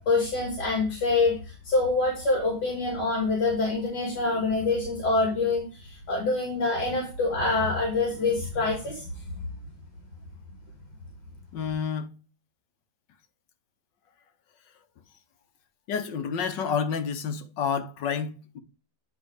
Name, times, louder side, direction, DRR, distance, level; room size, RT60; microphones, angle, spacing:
voice 1, 0.1-9.1, left 3 dB, 70° left, 2.8 m, -26 dB
voice 2, 11.5-12.1 15.9-18.6, left 6 dB, 85° left, 1.6 m, -29 dB
9.5 x 3.7 x 4.8 m
omnidirectional pair, 1.9 m